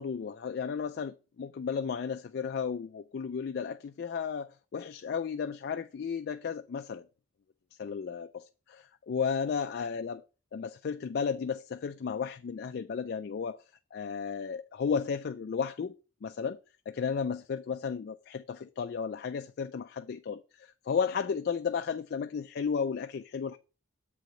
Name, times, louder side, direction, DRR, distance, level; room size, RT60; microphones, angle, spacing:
voice 1, 0.0-7.0 7.8-10.2 10.5-13.6 13.9-15.9 16.2-16.6 16.9-23.6, left 6 dB, 50° left, 0.3 m, -34 dB
7.7 x 4.8 x 3.8 m
head